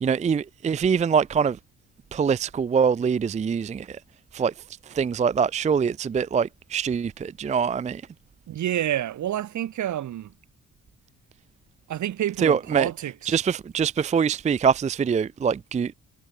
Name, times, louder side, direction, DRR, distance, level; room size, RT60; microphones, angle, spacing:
voice 1, 0.0-1.6 2.1-4.0 4.3-4.5 4.9-8.0 12.4-12.9 13.3-15.9, right 6 dB, 25° right, 0.4 m, -24 dB
voice 2, 8.5-10.3 11.9-13.4, right 11 dB, 70° right, 3.7 m, -28 dB
cardioid pair, 90°, 30 cm